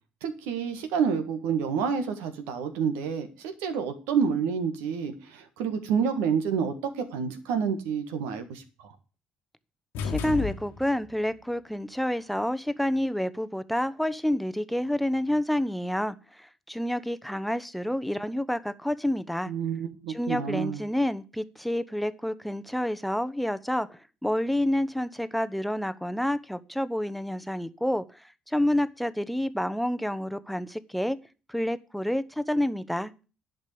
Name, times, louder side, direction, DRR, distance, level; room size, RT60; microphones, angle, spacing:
voice 1, 0.2-8.9 19.5-20.8, right 6 dB, 75° right, 1.7 m, -29 dB
sound 1, 9.9-11.2, left 6 dB, 70° left, 1.4 m, -33 dB
voice 2, 10.0-19.5 20.1-31.2 31.5-33.1, left 1 dB, ahead, 0.9 m, -29 dB
10.5 x 5.5 x 8.5 m
hypercardioid pair, 50°, 3 cm